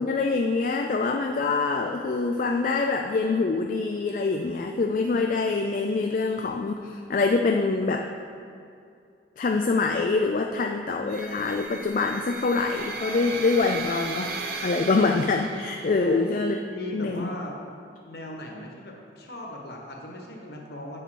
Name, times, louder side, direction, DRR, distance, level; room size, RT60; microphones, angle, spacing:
voice 1, 0.0-8.0 9.4-14.3 14.6-16.6 16.9-17.3, left 3 dB, 50° left, 3 dB, 0.4 m, -25 dB
sound 1, 11.1-16.1, right 4 dB, 60° right, 0.7 m, -36 dB
voice 2, 16.0-16.4 16.7-17.6 18.0-21.0, left 1 dB, 65° left, 0 dB, 1.3 m, -38 dB
8.4 x 6.7 x 4.6 m, 2.4 s
head